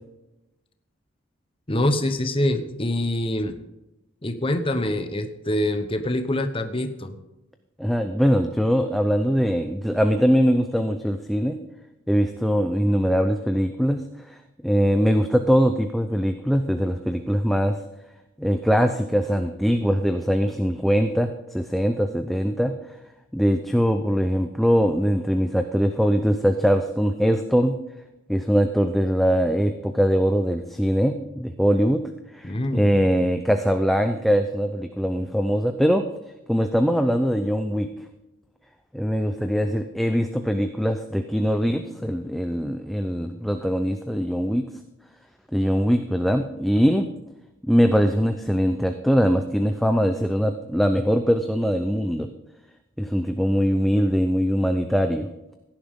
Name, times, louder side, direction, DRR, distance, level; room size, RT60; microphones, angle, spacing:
voice 1, 1.7-3.6 4.2-7.2 32.4-32.9, left 1 dB, 25° left, 7 dB, 1.1 m, -25 dB
voice 2, 7.8-11.6 12.1-17.8 18.4-22.7 23.3-27.7 28.3-32.0 32.3-36.0 36.5-37.9 38.9-44.7 45.5-47.1 47.7-52.3 53.0-55.3, equal, ahead, 6 dB, 0.5 m, -22 dB
16.5 x 10.5 x 3.8 m, 0.96 s
head